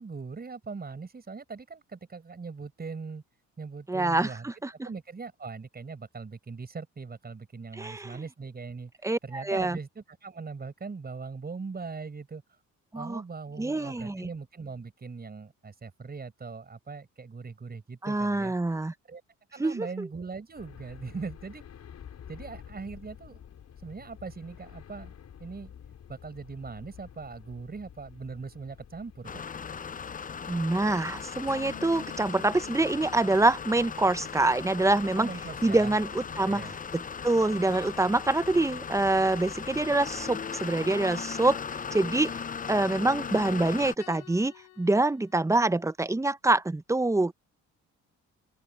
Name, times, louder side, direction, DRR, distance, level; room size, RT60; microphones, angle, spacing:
voice 1, 0.0-3.2 3.6-4.5 4.8-8.9 9.2-12.4 12.9-18.5 19.1-19.2 19.5-21.6 22.3-23.4 23.8-25.1 25.4-25.7 26.1-29.4 35.2-35.9 36.4-36.7, right 4 dB, 30° right, 6.4 m, -40 dB
voice 2, 3.9-4.7 7.7-8.2 9.0-9.8 12.9-13.2 13.6-14.3 18.0-18.9 19.6-20.1 30.5-35.3 35.6-41.6 41.9-42.3 42.7-47.3, right 2 dB, 10° right, 0.8 m, -26 dB
sound 1, 20.5-40.5, left 8 dB, 60° left, 5.5 m, -51 dB
sound 2, 29.2-43.9, left 6 dB, 25° left, 0.6 m, -38 dB
sound 3, 31.5-34.0 37.7-39.5 44.0-45.4, left 13 dB, 85° left, 3.2 m, -50 dB
open air
cardioid pair, 90°, 30 cm